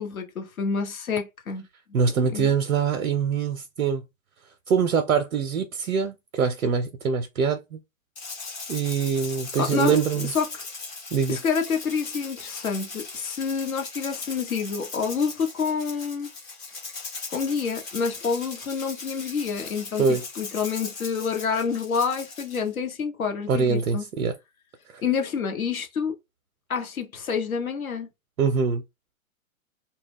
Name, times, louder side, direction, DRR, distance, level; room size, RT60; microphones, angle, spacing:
voice 1, 0.0-1.6 2.2-2.5 9.6-10.5 11.3-16.3 17.3-20.0 20.4-24.0 25.0-26.1 26.7-28.1, left 6 dB, 80° left, 1.0 m, -28 dB
voice 2, 1.9-4.0 4.7-7.8 8.7-10.3 11.1-11.4 20.0-20.3 23.5-24.3 24.9-25.0 28.4-28.8, right 6 dB, 85° right, 0.6 m, -24 dB
Rattle (instrument), 8.2-22.7, left 4 dB, 15° left, 0.3 m, -39 dB
2.3 x 2.1 x 3.4 m
hypercardioid pair, 120°, 41 cm